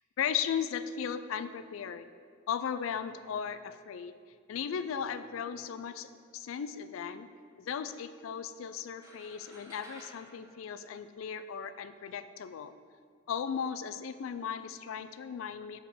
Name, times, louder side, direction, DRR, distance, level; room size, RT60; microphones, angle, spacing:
voice 1, 0.2-2.1 2.5-4.1 4.5-6.1 6.3-7.3 7.6-12.7 13.3-15.8, left 7 dB, 85° left, 12 dB, 0.3 m, -36 dB
sound 1, 9.0-11.6, right 1 dB, 15° right, 0.8 m, -54 dB
6.9 x 4.3 x 5.6 m, 2.2 s
head